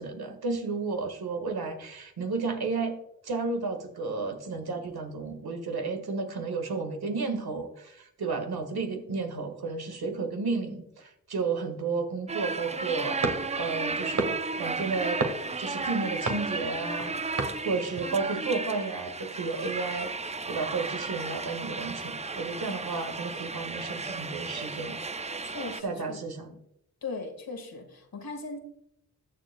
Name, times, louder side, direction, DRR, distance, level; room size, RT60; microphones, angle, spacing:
voice 1, 0.0-3.0 3.2-14.2 14.6-15.2 15.6-20.1 20.5-25.0 25.8-26.5, right 4 dB, 85° right, 4 dB, 1.6 m, -32 dB
sound 1, 12.3-25.8, right 3 dB, 20° right, 0.4 m, -34 dB
sound 2, 13.2-18.4, right 3 dB, 55° right, 1.6 m, -35 dB
voice 2, 25.4-26.6 27.0-28.6, left 3 dB, 70° left, 5 dB, 1.8 m, -39 dB
21.0 x 7.1 x 2.2 m, 0.78 s
cardioid pair, 55°, 36 cm